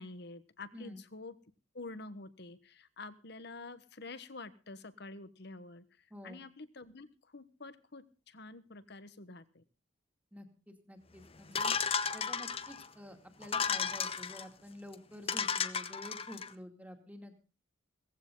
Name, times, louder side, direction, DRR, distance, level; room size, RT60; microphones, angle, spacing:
voice 1, 0.0-1.4 1.7-5.8 6.2-9.6, left 3 dB, 60° left, 14 dB, 1.3 m, -48 dB
voice 2, 10.3-11.7 12.1-17.5, equal, 10° right, 5 dB, 2.4 m, -49 dB
sound 1, 11.5-12.9 13.4-14.4 14.9-15.0 15.3-16.5, left 6 dB, 30° left, 0.9 m, -34 dB
18.0 x 15.5 x 3.9 m, 0.33 s
head